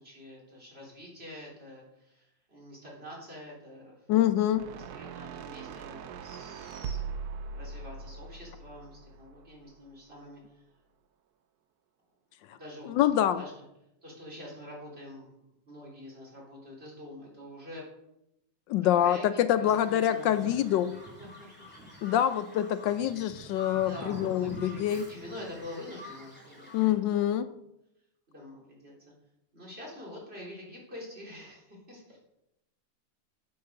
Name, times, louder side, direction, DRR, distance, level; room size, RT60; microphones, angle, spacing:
voice 1, 0.0-4.1 4.9-7.2 7.5-10.6 12.4-13.6 14.0-17.8 18.9-20.5 21.2-21.3 22.0-22.2 23.8-27.0 28.3-28.9 29.5-32.2, left 1 dB, 30° right, -4 dB, 3.8 m, -46 dB
voice 2, 4.1-4.7 12.5-12.6 12.9-13.4 18.7-21.0 22.0-25.1 26.7-27.5, left 11 dB, 75° left, 11 dB, 1.2 m, -26 dB
sound 1, 4.5-9.8, right 5 dB, 70° right, 1.1 m, -41 dB
Bird vocalization bird call bird song, 19.7-26.9, equal, 5° left, 2.8 m, -47 dB
9.4 x 6.9 x 6.5 m, 0.85 s
omnidirectional pair, 2.0 m